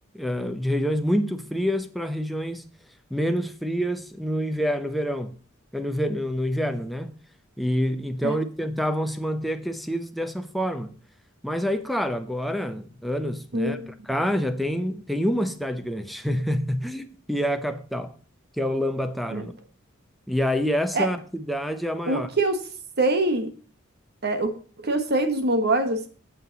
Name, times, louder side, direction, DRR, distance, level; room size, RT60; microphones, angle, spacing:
voice 1, 0.1-2.6 3.1-5.3 5.7-7.1 7.6-10.9 11.4-18.1 18.6-19.5 20.3-22.3, equal, ahead, 0.8 m, -27 dB
voice 2, 22.1-22.6 23.0-23.5 24.2-24.5 24.8-26.1, right 2 dB, 55° right, 1.4 m, -24 dB
8.5 x 7.5 x 4.1 m
head